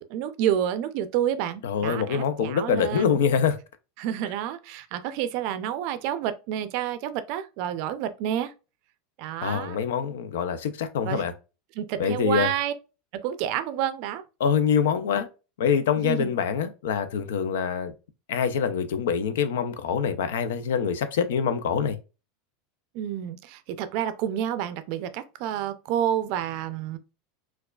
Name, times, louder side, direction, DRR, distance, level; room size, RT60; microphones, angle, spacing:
voice 1, 0.1-3.2 4.0-8.5 9.2-9.8 11.0-11.2 11.8-12.7 13.1-14.2 16.0-16.3 22.9-27.0, right 10 dB, 55° right, 0.4 m, -29 dB
voice 2, 1.6-3.6 9.4-11.3 12.0-12.5 14.4-15.3 15.6-17.9 18.3-22.0, left 7 dB, 85° left, 0.5 m, -25 dB
4.6 x 2.3 x 2.3 m
supercardioid pair, 150°, 0 cm